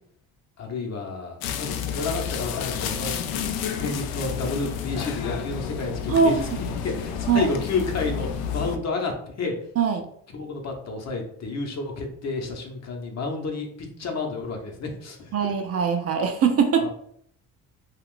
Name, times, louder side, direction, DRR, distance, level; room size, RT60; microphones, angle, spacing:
voice 1, 0.6-6.4 6.8-9.6 10.3-15.3 16.8-16.9, left 3 dB, 45° left, 2 dB, 0.8 m, -31 dB
sound 1, 1.4-8.8, left 8 dB, 75° left, 0.5 m, -30 dB
voice 2, 6.1-6.5 7.3-7.5 9.8-10.0 15.3-16.9, right 6 dB, 40° right, 5 dB, 0.5 m, -21 dB
2.4 x 2.3 x 3.6 m, 0.65 s
cardioid pair, 90°, 36 cm